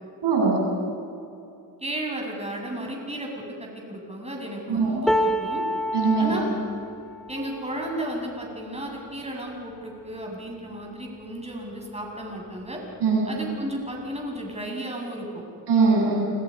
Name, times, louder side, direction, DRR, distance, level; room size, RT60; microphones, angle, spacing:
voice 1, 0.2-0.6 4.7-5.0 5.9-6.4 13.0-13.2 15.7-16.3, right 4 dB, 70° right, -2 dB, 7.1 m, -21 dB
voice 2, 1.8-5.6 6.2-6.4 7.3-12.8 13.2-15.4, right 1 dB, 15° right, 0 dB, 7.8 m, -34 dB
sound 1, 5.1-11.2 11.8-12.0 12.3-13.1 14.0-14.1, equal, ahead, 1.7 m, -31 dB
28.0 x 22.5 x 5.6 m, 2.6 s
supercardioid pair, 50°, 43 cm